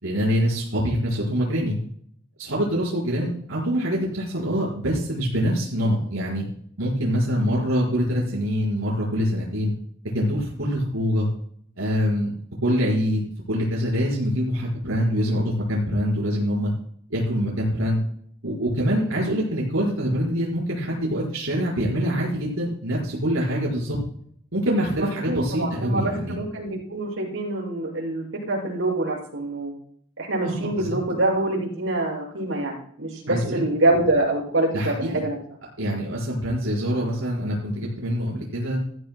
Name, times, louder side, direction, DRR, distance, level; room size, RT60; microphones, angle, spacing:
voice 1, 0.0-1.8 2.4-6.4 6.8-9.7 10.1-11.3 11.8-12.3 12.6-13.2 13.5-16.7 17.1-18.0 18.4-24.0 24.5-26.4 30.4-30.9 33.3-33.6 34.7-35.2 35.8-38.8, equal, 85° right, -5 dB, 5.0 m, -24 dB
voice 2, 25.0-29.7 30.2-35.4, right 2 dB, 70° right, -3 dB, 6.8 m, -25 dB
20.0 x 14.5 x 2.3 m, 0.64 s
head